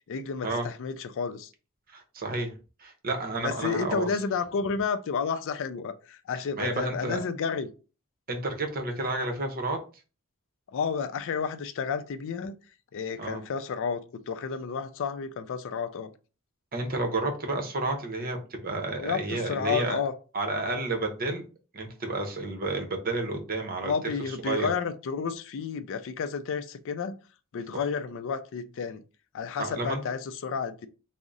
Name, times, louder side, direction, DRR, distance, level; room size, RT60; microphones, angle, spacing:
voice 1, 0.1-1.5 3.4-7.7 10.7-12.5 12.9-16.1 18.9-20.1 23.8-27.2 27.5-29.0 29.3-30.9, left 5 dB, 60° left, 0.4 m, -31 dB
voice 2, 1.9-2.5 2.8-4.1 6.6-7.2 8.3-9.8 13.2-13.4 16.7-20.0 20.3-21.4 21.7-24.7 29.6-30.0, right 2 dB, 45° right, 0.8 m, -31 dB
3.6 x 2.0 x 3.9 m
head